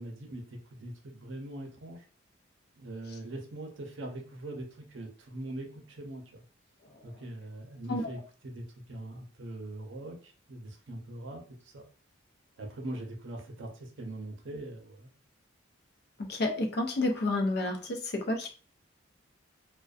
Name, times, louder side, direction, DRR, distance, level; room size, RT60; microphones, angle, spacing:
voice 1, 0.0-2.0 2.8-6.4 7.0-11.9 12.6-15.1, right 1 dB, 70° right, 2 dB, 0.6 m, -42 dB
voice 2, 16.3-18.5, left 2 dB, 55° left, 3 dB, 0.5 m, -30 dB
2.5 x 2.1 x 2.3 m, 0.39 s
head